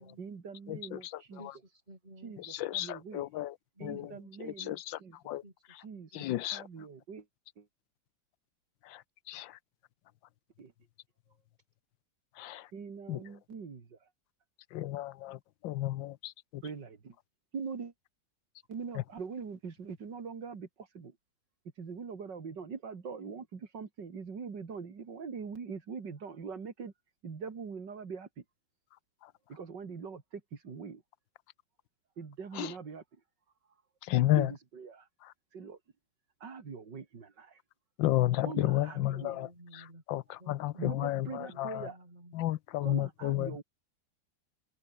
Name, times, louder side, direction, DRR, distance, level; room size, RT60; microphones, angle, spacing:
voice 1, 0.2-1.4 2.2-3.3 3.8-5.2 5.8-7.3 7.6-7.7 10.6-10.7 12.7-14.0 16.6-17.1 17.5-17.9 18.7-21.2 21.8-26.9 27.2-28.4 29.5-31.0 32.2-33.0 34.3-35.1 35.5-35.8 36.4-37.6 38.4-39.4 40.8-42.0 42.8-43.6, right 5 dB, 65° right, 3.2 m, -43 dB
voice 2, 0.7-1.0 2.6-3.5 3.8-4.1 4.4-4.8 5.3-5.4 6.1-6.6 9.3-9.5 12.4-12.6 13.1-13.2 14.7-15.4 15.6-16.6 32.6-32.7 34.1-34.5 38.0-39.5 40.1-41.9 42.3-43.5, left 14 dB, 90° left, 1.4 m, -31 dB
voice 3, 1.3-2.4 3.7-4.3 5.4-6.3 38.6-40.0 40.4-42.3, right 1 dB, 20° right, 4.8 m, -54 dB
omnidirectional pair, 2.0 m